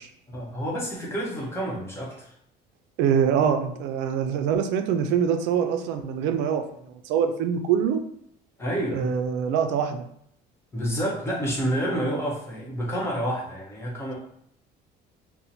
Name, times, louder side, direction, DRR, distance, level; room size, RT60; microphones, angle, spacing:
voice 1, 0.3-2.4 8.6-9.2 10.7-14.1, equal, 15° left, -4 dB, 1.0 m, -29 dB
voice 2, 3.0-8.0 8.9-10.1, right 7 dB, 90° right, 7 dB, 0.4 m, -24 dB
2.8 x 2.1 x 4.0 m, 0.70 s
cardioid pair, 145°, 18 cm